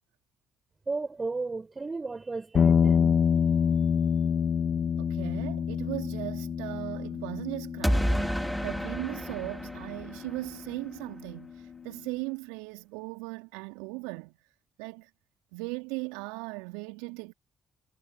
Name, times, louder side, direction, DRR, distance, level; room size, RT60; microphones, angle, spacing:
voice 1, 0.9-3.2, right 3 dB, 30° right, 7.0 m, -34 dB
sound 1, 2.5-10.9, left 7 dB, 50° left, 2.3 m, -27 dB
voice 2, 5.0-14.4 14.8-15.1 15.5-17.3, right 29 dB, 75° right, 2.6 m, -38 dB
sound 2, 7.8-10.7, equal, ahead, 3.8 m, -30 dB
figure-of-eight pair, 45°, 0 cm